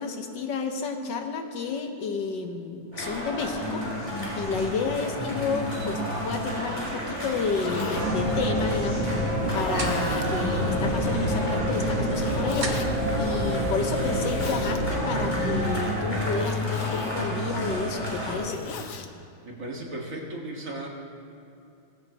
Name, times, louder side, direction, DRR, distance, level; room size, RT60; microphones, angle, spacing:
voice 1, 0.0-3.9 4.4-12.7 13.2-18.6, left 5 dB, 70° left, 5 dB, 1.6 m, -31 dB
sound 1, 2.9-18.4, left 1 dB, 15° left, 3.6 m, -30 dB
Zipper (clothing), 7.1-8.0 8.7-8.8 9.4-10.3 12.1-12.9 13.9-14.8 16.3-17.2 18.0-19.1, left 6 dB, 55° left, 1.1 m, -38 dB
sound 2, 7.9-15.6, right 1 dB, 85° right, 2.1 m, -28 dB
voice 2, 19.5-20.9, right 1 dB, 45° right, -1 dB, 2.1 m, -35 dB
18.0 x 16.0 x 3.0 m, 2.7 s
omnidirectional pair, 2.0 m